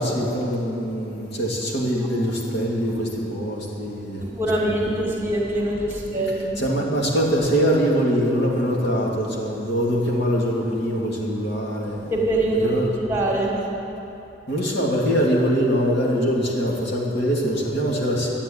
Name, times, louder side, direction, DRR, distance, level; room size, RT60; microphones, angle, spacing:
voice 1, 0.0-4.2 4.6-5.0 6.6-12.1 12.6-12.9 14.5-18.3, equal, 70° left, -3 dB, 2.5 m, -23 dB
voice 2, 4.2-6.6 12.1-13.5, right 1 dB, 15° right, -3 dB, 2.3 m, -23 dB
12.5 x 8.7 x 9.0 m, 3.0 s
head